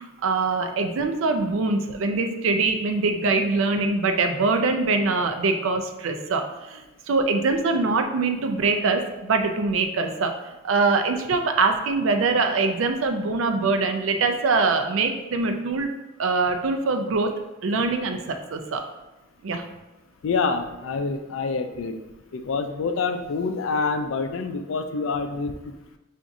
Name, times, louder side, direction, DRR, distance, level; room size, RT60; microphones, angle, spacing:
voice 1, 0.0-10.3 10.6-17.3 17.6-18.8 19.4-19.7, right 3 dB, 80° right, 6 dB, 0.4 m, -23 dB
voice 2, 20.2-22.0 22.3-25.8, left 4 dB, 75° left, 7 dB, 0.4 m, -27 dB
5.8 x 2.5 x 2.5 m, 1.0 s
head